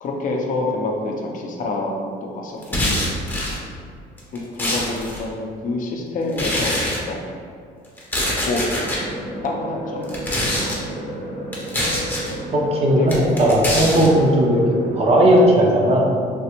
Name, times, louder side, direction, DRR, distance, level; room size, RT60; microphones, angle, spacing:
voice 1, 0.0-3.2 4.3-7.3 8.4-8.6 9.4-11.1 13.0-13.1 13.8-14.0 15.0-15.1, left 2 dB, 50° left, 0 dB, 0.5 m, -28 dB
sound 1, 2.6-3.6 4.2-5.2 6.3-7.0 8.0-9.0 10.0-10.8 11.5-12.3 13.1-14.1, left 1 dB, 10° left, 0.6 m, -24 dB
sound 2, 8.8-15.5, right 1 dB, 70° right, 1.4 m, -32 dB
voice 2, 12.5-13.1 13.4-14.6 14.9-16.1, right 1 dB, 35° right, -1 dB, 0.5 m, -16 dB
3.3 x 2.1 x 2.9 m, 2.3 s
cardioid pair, 110°, 17 cm